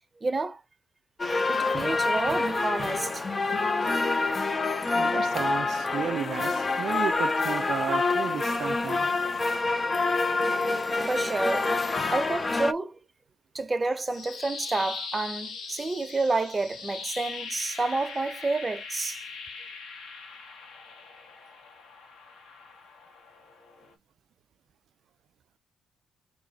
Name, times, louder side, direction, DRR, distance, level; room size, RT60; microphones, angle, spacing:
voice 1, 0.2-0.6 1.5-3.3 11.0-11.7 12.1-13.0 13.5-19.2, right 3 dB, 25° right, 0.6 m, -29 dB
sound 1, 1.2-12.7, left 3 dB, 30° left, 0.5 m, -27 dB
voice 2, 4.9-9.1, right 9 dB, 65° right, 0.3 m, -33 dB
sound 2, 13.9-23.9, left 4 dB, 70° left, 1.5 m, -41 dB
3.1 x 3.0 x 3.9 m
cardioid pair, 90°, 0 cm